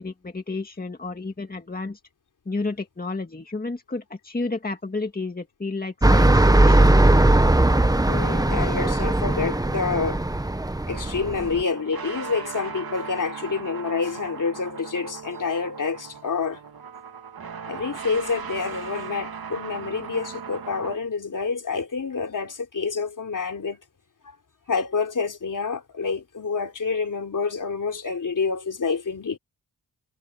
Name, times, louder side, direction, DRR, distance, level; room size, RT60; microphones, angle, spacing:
voice 1, 0.0-2.0 2.5-7.0, left 3 dB, 25° left, 2.1 m, -31 dB
sound 1, 6.0-11.6, right 1 dB, 10° right, 1.0 m, -19 dB
voice 2, 8.0-10.2 10.9-16.6 17.7-23.8 24.7-29.4, left 5 dB, 55° left, 3.4 m, -28 dB
sound 2, 10.9-21.0, right 6 dB, 75° right, 2.7 m, -38 dB
wide cardioid pair, 85°, 37 cm